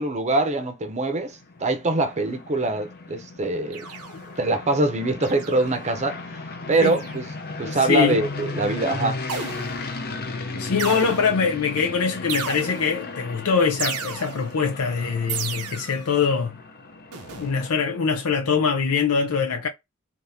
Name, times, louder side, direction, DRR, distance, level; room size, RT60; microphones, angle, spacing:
voice 1, 0.0-3.9 4.4-6.2 6.7-7.3 7.6-9.2, right 2 dB, 30° right, 0.7 m, -23 dB
sound 1, 1.1-18.3, left 3 dB, 45° left, 0.6 m, -36 dB
sound 2, 3.7-4.4 5.2-5.9 6.8-7.3 9.3-10.0 10.8-11.5 12.3-13.1 13.8-14.6 15.3-16.1 17.1-17.6, right 6 dB, 85° right, 0.7 m, -33 dB
voice 2, 7.6-8.2 10.5-16.6 17.4-19.7, left 5 dB, 85° left, 0.6 m, -23 dB
3.5 x 2.7 x 2.7 m
head